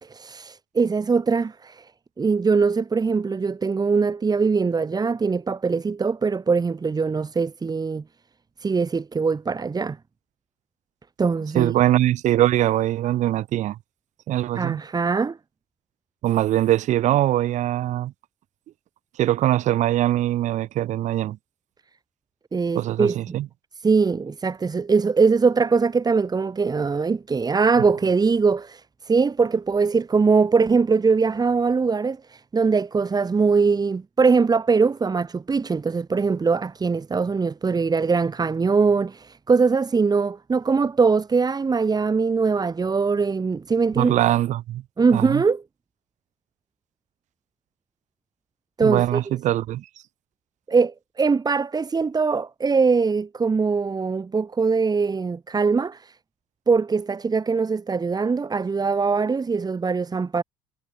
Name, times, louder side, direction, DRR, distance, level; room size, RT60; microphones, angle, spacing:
voice 1, 0.0-1.9 2.2-8.0 8.6-10.0 11.2-11.7 14.6-15.4 22.5-23.4 23.8-44.1 45.0-45.6 48.8-49.2 50.7-56.1 56.7-60.4, right 4 dB, 30° right, 2.3 m, -22 dB
voice 2, 11.5-13.8 14.3-14.8 16.2-18.1 19.2-21.4 22.8-23.5 44.0-44.8 45.1-45.4 48.8-49.9, right 13 dB, 60° right, 2.0 m, -22 dB
hypercardioid pair, 55°, 14 cm